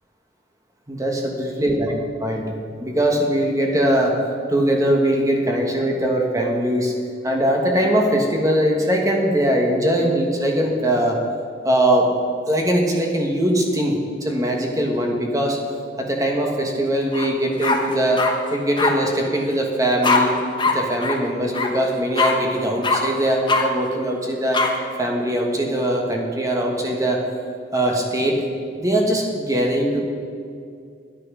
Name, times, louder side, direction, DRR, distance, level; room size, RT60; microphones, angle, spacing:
voice 1, 0.9-1.9 2.2-2.5 2.8-4.1 4.5-6.9 7.2-11.2 11.6-12.1 12.5-15.6 16.0-18.2 18.5-20.3 20.6-24.6 25.0-27.2 27.7-28.4 28.8-30.0, right 1 dB, 20° right, 0 dB, 1.4 m, -21 dB
sound 1, 17.1-17.3 17.6-18.3 18.8-18.9 20.0-20.2 20.6-20.7 21.0-21.2 21.5-21.7 22.2-22.3 22.8-23.0 23.5-23.6 24.5-24.7, left 4 dB, 25° left, 1.1 m, -20 dB
10.5 x 10.0 x 6.1 m, 2.3 s
head